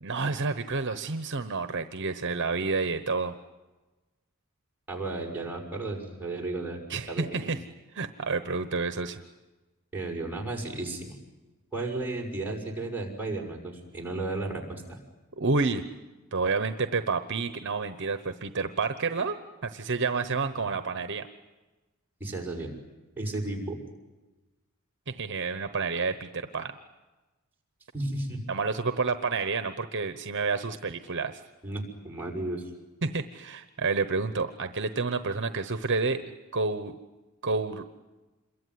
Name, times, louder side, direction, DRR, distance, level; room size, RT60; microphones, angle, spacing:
voice 1, 0.0-3.3 6.9-7.6 7.9-9.2 15.4-15.8 16.3-19.4 19.6-21.3 25.1-26.7 28.5-31.4 33.0-36.9 37.4-38.0, right 4 dB, 55° right, 10 dB, 1.0 m, -29 dB
voice 2, 4.9-6.8 7.1-7.5 9.9-11.2 11.7-15.0 22.2-22.7 23.2-23.8 27.9-28.4 31.6-32.7, right 2 dB, 10° right, -2 dB, 6.1 m, -33 dB
27.0 x 22.5 x 9.5 m, 1.2 s
head